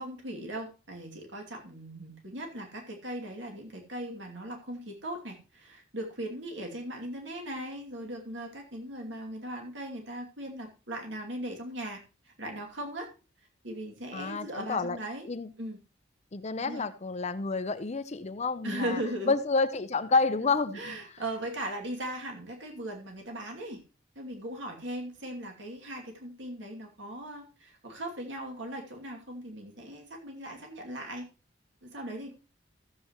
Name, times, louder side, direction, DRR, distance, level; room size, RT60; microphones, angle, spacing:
voice 1, 0.0-13.1 13.6-15.3 15.6-15.8 16.6-16.8 18.6-19.3 20.7-23.8 24.2-31.3 31.8-32.3, right 1 dB, 75° right, 2.6 m, -38 dB
voice 2, 14.1-15.0 15.3-15.5 16.3-19.0 19.3-21.0, left 4 dB, 35° left, 0.6 m, -29 dB
14.5 x 7.8 x 3.0 m
head